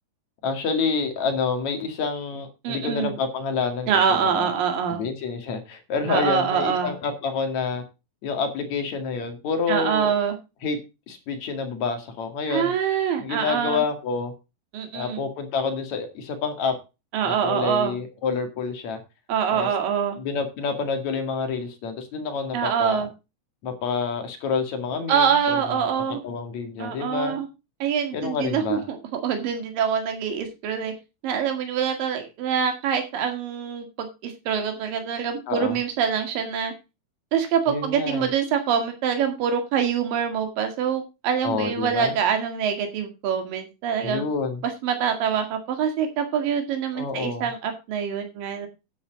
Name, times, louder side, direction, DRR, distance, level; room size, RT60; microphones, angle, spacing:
voice 1, 0.4-4.5 4.9-7.8 8.2-10.1 10.6-10.8 11.1-12.7 13.2-14.3 14.9-16.8 17.2-19.0 19.5-19.7 20.2-23.1 23.6-27.4 28.1-28.8 35.5-35.8 37.7-38.3 41.4-42.1 44.0-44.6 46.9-47.5, left 5 dB, 55° left, 6 dB, 3.2 m, -28 dB
voice 2, 2.6-3.1 3.9-5.0 6.1-6.9 9.7-10.4 12.5-13.8 14.7-15.2 17.1-17.9 19.3-20.2 22.5-23.1 25.1-26.2 26.8-27.5 27.8-30.9 31.2-36.7 37.3-44.2 44.6-48.7, right 7 dB, 80° right, 5 dB, 3.7 m, -25 dB
10.0 x 9.5 x 3.9 m, 0.28 s
omnidirectional pair, 4.0 m